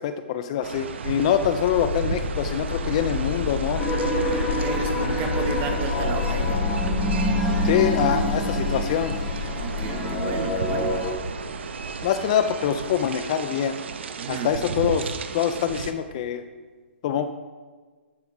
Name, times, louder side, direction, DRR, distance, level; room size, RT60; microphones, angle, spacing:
voice 1, 0.0-3.8 7.6-9.2 12.0-13.7 14.3-15.1 15.3-16.4 17.0-17.3, left 9 dB, 30° left, 9 dB, 0.4 m, -24 dB
sound 1, 0.6-15.9, right 5 dB, 65° right, 0.9 m, -34 dB
sound 2, 1.4-12.0, left 4 dB, 80° left, 1.5 m, -29 dB
sound 3, 3.8-11.1, equal, 5° left, 1.2 m, -28 dB
voice 2, 4.2-6.7 9.5-11.0 14.2-14.6, right 7 dB, 25° right, 6 dB, 1.0 m, -33 dB
10.5 x 7.1 x 4.8 m, 1.4 s
hypercardioid pair, 160°, 7 cm